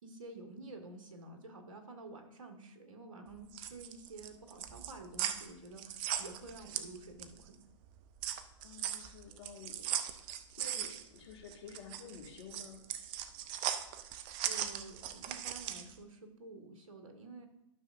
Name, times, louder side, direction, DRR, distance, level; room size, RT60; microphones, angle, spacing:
voice 1, 0.0-7.7 14.4-17.5, right 2 dB, 75° right, 4 dB, 1.7 m, -50 dB
sound 1, 3.3-7.5 7.8-15.9, right 10 dB, 30° right, 0.6 m, -39 dB
voice 2, 8.6-9.8 10.2-10.3 10.6-12.9, left 5 dB, 55° left, 2 dB, 2.0 m, -51 dB
12.5 x 6.3 x 2.6 m, 0.88 s
hypercardioid pair, 125°, 17 cm